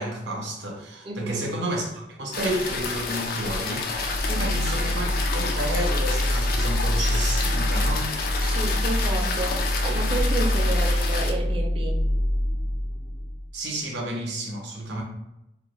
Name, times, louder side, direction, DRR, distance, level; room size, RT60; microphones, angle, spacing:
voice 1, 0.0-3.9 4.4-8.1 13.5-15.0, right 1 dB, 85° right, 0 dB, 0.6 m, -31 dB
sound 1, 2.3-11.3, left 4 dB, 55° left, 0.3 m, -30 dB
sound 2, 3.9-13.5, equal, 70° left, 0.9 m, -25 dB
voice 2, 8.4-12.1, right 2 dB, 30° right, 1 dB, 0.4 m, -31 dB
2.3 x 2.0 x 3.0 m, 0.87 s
head